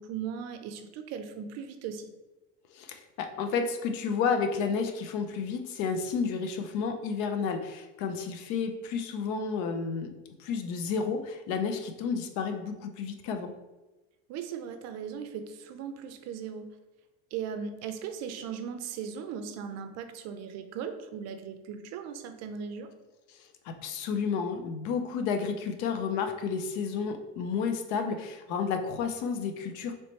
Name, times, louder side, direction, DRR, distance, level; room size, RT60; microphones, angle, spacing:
voice 1, 0.0-2.1 14.3-16.7 17.3-22.9, right 7 dB, 55° right, 9 dB, 0.5 m, -38 dB
voice 2, 2.7-10.1 10.4-13.5 23.6-30.0, left 5 dB, 70° left, 6 dB, 0.6 m, -31 dB
3.2 x 3.0 x 4.2 m, 1.1 s
cardioid pair, 145°, 30 cm